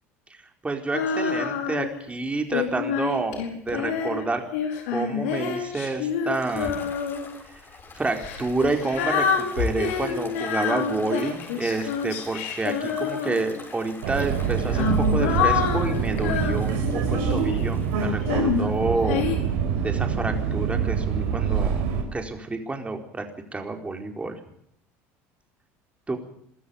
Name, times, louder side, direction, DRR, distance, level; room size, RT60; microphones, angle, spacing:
voice 1, 0.6-4.4 4.9-6.9 7.9-9.3 9.5-19.3 19.8-21.8 22.1-23.2 23.5-24.4 26.1-26.2, right 3 dB, 15° right, 4 dB, 4.4 m, -29 dB
Female singing, 0.9-2.0 2.5-7.3 8.1-13.7 14.4-17.6 18.2-19.4, left 7 dB, 80° left, 4.8 m, -27 dB
sound 1, 6.3-18.1, left 4 dB, 30° left, 6.6 m, -45 dB
Subway metro underground, 14.0-22.0, right 7 dB, 80° right, 5.3 m, -25 dB
23.0 x 13.5 x 8.6 m, 0.72 s
supercardioid pair, 90°, 7 cm